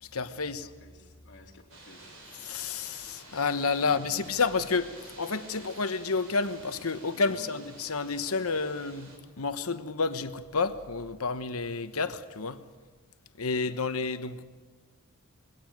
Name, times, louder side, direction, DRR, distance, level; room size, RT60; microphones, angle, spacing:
voice 1, 0.0-0.7 2.4-12.6 13.4-14.4, left 4 dB, 90° left, 1.1 m, -30 dB
voice 2, 0.6-2.2 3.8-4.3 7.1-7.6, left 1 dB, 55° left, 3.4 m, -51 dB
sound 1, 1.7-9.2, right 2 dB, 80° right, 6.4 m, -50 dB
22.0 x 17.0 x 9.3 m
head